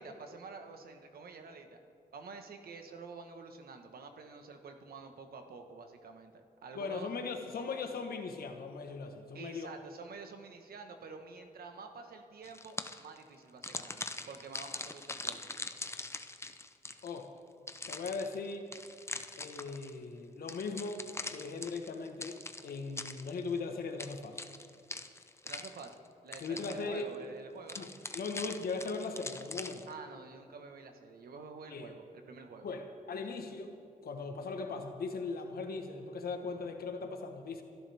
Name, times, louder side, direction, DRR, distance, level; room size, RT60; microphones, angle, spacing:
voice 1, 0.0-1.8 2.1-7.1 9.3-15.4 25.4-26.0 26.2-27.9 29.9-32.7, right 4 dB, 80° right, 5 dB, 1.4 m, -48 dB
voice 2, 6.7-9.7 17.0-17.3 17.9-18.7 19.4-24.4 26.4-27.1 27.8-29.9 31.7-31.9 32.6-33.7 34.0-37.6, left 4 dB, 80° left, 5 dB, 1.3 m, -39 dB
sound 1, 12.4-13.2 13.6-17.2 17.7-20.0 20.5-23.6 24.0-26.1 26.3-27.0 27.7-29.9, left 2 dB, 15° left, 0.7 m, -43 dB
29.0 x 11.0 x 3.5 m, 2.4 s
cardioid pair, 75°, 15 cm